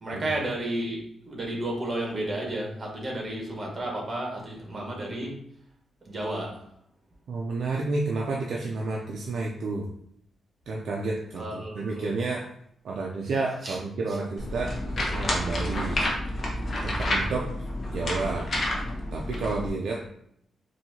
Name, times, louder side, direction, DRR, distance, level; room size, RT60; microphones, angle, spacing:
voice 1, 0.0-5.4 6.0-6.6 8.5-8.7 11.4-12.1 13.6-13.8, right 1 dB, 35° right, -1 dB, 1.4 m, -32 dB
voice 2, 7.3-9.9 10.7-12.5 12.8-16.0 16.8-18.5 19.1-20.1, right 3 dB, 70° right, -1 dB, 0.4 m, -31 dB
sound 1, 14.4-19.7, left 1 dB, 45° left, 0.9 m, -29 dB
4.2 x 2.7 x 2.9 m, 0.71 s
cardioid pair, 105°, 0 cm